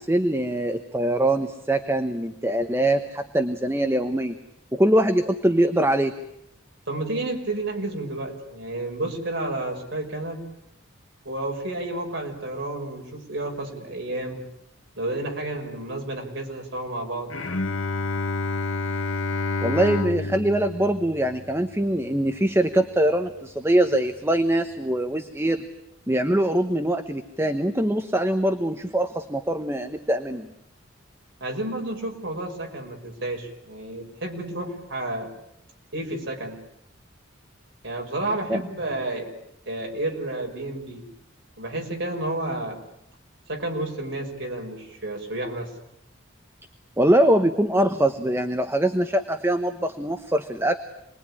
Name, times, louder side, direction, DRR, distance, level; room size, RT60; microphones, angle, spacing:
voice 1, 0.0-4.4 4.7-6.1 19.6-25.6 26.1-30.5 38.5-38.6 47.0-50.8, right 1 dB, 10° right, 7 dB, 1.0 m, -23 dB
voice 2, 6.9-10.4 11.2-14.4 15.0-17.3 31.4-35.3 35.9-36.6 37.8-39.3 39.7-41.0 41.6-42.8 43.5-45.7, right 2 dB, 65° right, 1 dB, 5.8 m, -31 dB
Bowed string instrument, 17.3-22.6, left 3 dB, 80° left, 1.6 m, -29 dB
27.5 x 21.5 x 10.0 m, 0.79 s
head